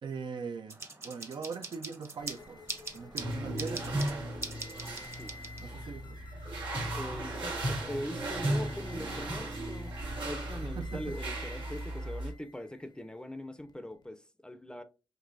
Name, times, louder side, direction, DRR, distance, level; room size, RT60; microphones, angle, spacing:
voice 1, 0.0-2.6 2.9-4.1 5.6-6.2 10.8-11.2, right 5 dB, 70° right, 0.6 m, -41 dB
sound 1, 0.7-5.9, right 3 dB, 35° right, 0.9 m, -43 dB
sound 2, 2.2-14.1, left 3 dB, 60° left, 0.8 m, -52 dB
sound 3, 3.2-12.3, right 1 dB, 90° right, 1.5 m, -36 dB
voice 2, 6.9-14.8, left 1 dB, 10° left, 0.6 m, -42 dB
5.2 x 2.9 x 2.6 m
cardioid pair, 70°, 8 cm